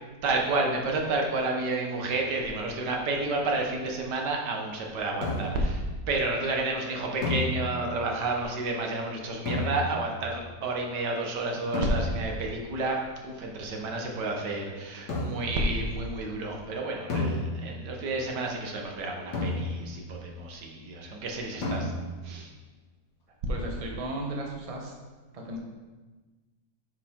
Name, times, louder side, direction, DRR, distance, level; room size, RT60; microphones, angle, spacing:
voice 1, 0.2-21.9 22.2-22.5, right 2 dB, 85° right, 1 dB, 1.7 m, -30 dB
sound 1, 5.2-5.8 7.2-8.1 9.5-10.2 11.7-12.5 15.1-15.6 17.1-18.0 19.3-20.1 21.6-22.3, left 1 dB, 75° left, 2.0 m, -32 dB
voice 2, 23.5-24.9 25.3-25.6, right 1 dB, 25° right, 0 dB, 0.9 m, -35 dB
9.0 x 4.8 x 3.7 m, 1.3 s
omnidirectional pair, 1.8 m